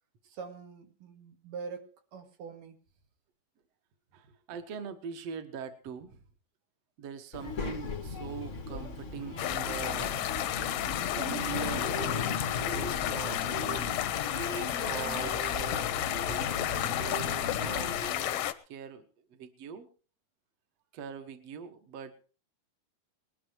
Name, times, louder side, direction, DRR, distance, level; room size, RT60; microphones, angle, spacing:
voice 1, 0.2-2.8 4.2-4.3, right 5 dB, 85° right, 6 dB, 3.2 m, -44 dB
voice 2, 4.1-6.2 7.0-10.2 11.1-14.1 14.9-19.0 19.3-19.9 20.9-22.1, right 7 dB, 55° right, 9 dB, 2.2 m, -42 dB
Child speech kid speaking, 7.3-18.1, left 4 dB, 65° left, 0.7 m, -38 dB
sound 1, 8.2-18.2, right 1 dB, 40° right, 1.5 m, -43 dB
sound 2, 9.4-18.5, left 13 dB, 80° left, 2.4 m, -32 dB
20.0 x 12.0 x 4.6 m, 0.38 s
omnidirectional pair, 3.7 m